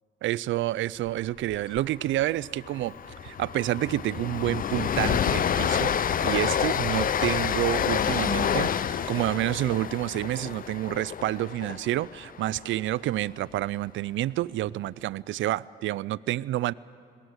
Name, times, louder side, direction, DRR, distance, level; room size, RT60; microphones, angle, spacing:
voice 1, 0.2-2.9 3.2-16.7, right 15 dB, 75° right, 21 dB, 0.4 m, -29 dB
Train, 1.5-1.8 2.1-2.2 2.6-12.7, left 8 dB, 45° left, 0.6 m, -28 dB
21.5 x 18.0 x 7.9 m, 2.3 s
cardioid pair, 90°, 20 cm